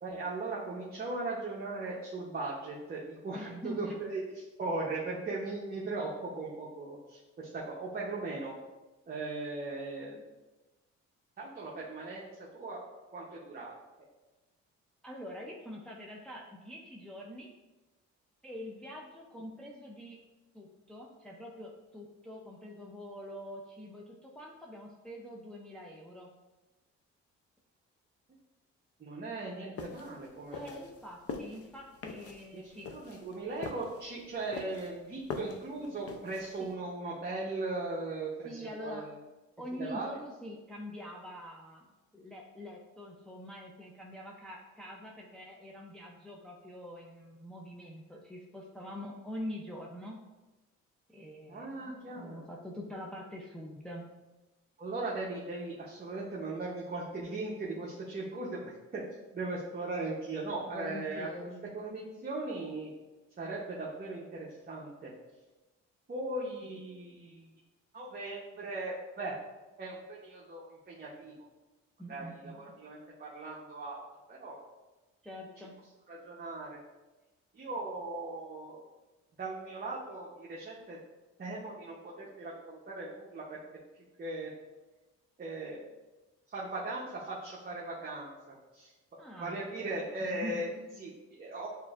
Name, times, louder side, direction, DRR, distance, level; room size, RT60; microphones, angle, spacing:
voice 1, 0.0-8.5 9.1-10.2 11.4-12.3 12.5-12.8 13.1-13.7 29.0-30.9 32.5-39.1 39.8-40.1 51.5-52.5 54.8-59.0 59.3-61.3 61.7-62.9 63.4-65.1 66.1-67.5 67.9-69.4 69.8-71.3 72.1-74.0 74.3-74.6 76.1-76.8 77.5-78.8 79.4-81.0 81.4-83.6 84.2-84.5 85.4-85.8 86.5-90.7 91.0-91.7, right 2 dB, 30° right, -4 dB, 0.8 m, -38 dB
voice 2, 3.3-4.0 15.0-17.5 18.4-20.2 20.5-26.3 30.5-32.9 36.6-36.7 38.4-39.1 39.6-50.2 51.1-54.1 60.7-61.6 72.0-72.6 75.2-75.7 89.2-89.6 90.2-90.9, left 1 dB, 5° left, -2 dB, 0.5 m, -44 dB
sound 1, 29.8-36.7, left 4 dB, 50° left, 0.5 m, -43 dB
6.6 x 2.6 x 2.4 m, 1.1 s
cardioid pair, 90°, 30 cm